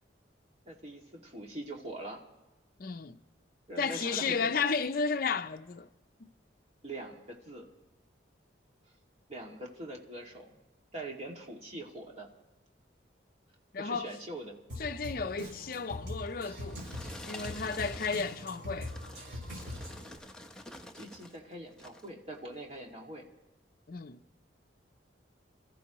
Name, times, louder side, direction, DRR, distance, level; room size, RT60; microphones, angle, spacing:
voice 1, 0.7-2.2 3.7-4.5 6.8-7.7 9.3-10.6 10.9-12.3 13.8-14.6 20.9-23.3, right 1 dB, 35° right, 2.2 m, -43 dB
voice 2, 2.8-3.2 3.8-5.9 6.2-6.3 13.7-14.1 14.8-16.8 17.2-18.9 23.9-24.2, left 5 dB, 50° left, 0.5 m, -33 dB
Drum kit, 14.7-20.2, left 1 dB, 65° right, 4.8 m, -42 dB
sound 1, 16.3-21.4 21.7-22.1 22.7-22.8, left 1 dB, 5° left, 0.8 m, -48 dB
27.5 x 14.5 x 3.0 m
head